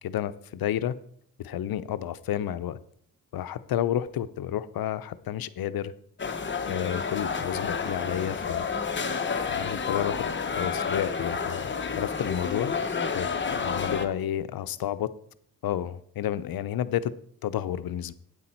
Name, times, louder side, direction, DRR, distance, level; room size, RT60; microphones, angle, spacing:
voice 1, 0.0-0.9 1.4-2.8 3.3-5.9 6.7-8.7 9.5-12.7 13.1-15.1 15.6-17.1 17.4-18.1, left 11 dB, 70° left, 0.6 m, -31 dB
sound 1, 6.2-14.1, left 5 dB, 30° left, 1.0 m, -30 dB
8.8 x 8.4 x 4.4 m
cardioid pair, 85°, 36 cm